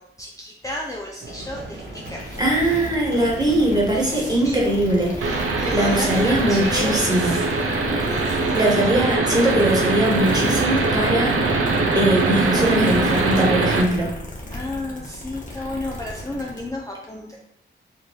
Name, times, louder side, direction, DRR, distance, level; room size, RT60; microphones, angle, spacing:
voice 1, 0.0-2.3 3.9-4.6 5.2-8.6 14.5-17.4, left 1 dB, 15° left, -2 dB, 0.5 m, -33 dB
sound 1, 1.2-13.5, right 2 dB, 60° right, 1.2 m, -37 dB
sound 2, 2.0-16.7, left 1 dB, 35° left, 1.2 m, -37 dB
voice 2, 2.4-7.4 8.5-11.6 11.9-14.1, right 1 dB, 20° right, -2 dB, 1.4 m, -21 dB
sound 3, 5.2-13.8, right 3 dB, 85° right, 0.6 m, -22 dB
4.3 x 2.6 x 3.2 m, 0.84 s
cardioid pair, 60°, 21 cm